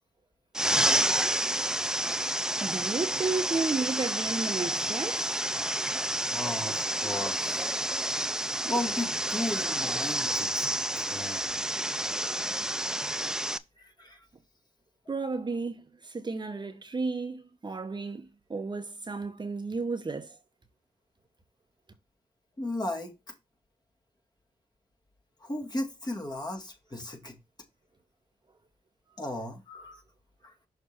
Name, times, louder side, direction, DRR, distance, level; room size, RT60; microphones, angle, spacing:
sound 1, 0.5-13.6, right 1 dB, 5° right, 0.4 m, -29 dB
voice 1, 2.6-5.3 15.1-20.4, right 3 dB, 30° right, 1.0 m, -33 dB
voice 2, 6.3-7.8 8.6-11.6 13.8-14.3 22.6-23.3 25.4-27.4 29.2-30.0 30.4-30.5, left 1 dB, 30° left, 2.0 m, -35 dB
6.3 x 3.3 x 5.9 m
cardioid pair, 65°, 15 cm